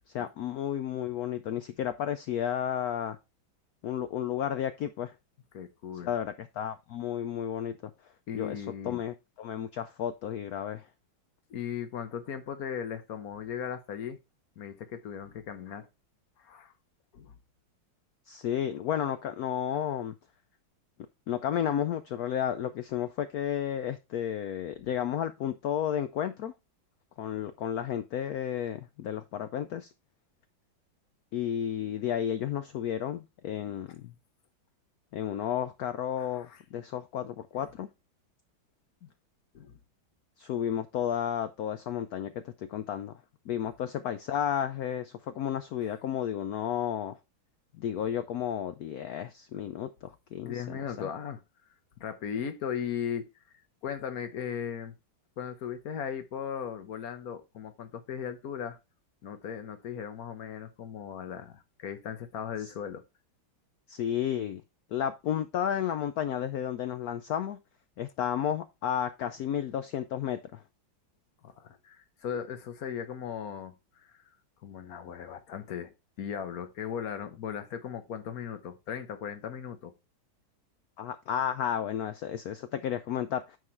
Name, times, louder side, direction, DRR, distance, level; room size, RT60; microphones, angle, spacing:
voice 1, 0.1-3.2 3.8-5.1 6.0-7.8 8.3-10.9 18.3-20.1 21.3-26.5 27.2-29.9 31.3-34.1 35.1-37.9 40.4-43.2 43.5-47.2 47.8-51.1 63.9-64.6 64.9-67.6 68.0-70.6 81.0-83.6, left 9 dB, 85° left, 0.8 m, -32 dB
voice 2, 5.5-6.1 8.3-9.0 11.5-14.2 14.6-15.9 16.4-16.7 17.1-17.3 36.2-36.6 37.6-37.7 39.0-39.1 39.5-39.8 50.4-51.4 52.0-53.3 53.8-54.9 55.4-58.8 59.2-63.0 71.4-74.2 74.6-79.9, left 8 dB, 55° left, 1.3 m, -37 dB
9.2 x 3.8 x 4.4 m
omnidirectional pair, 2.2 m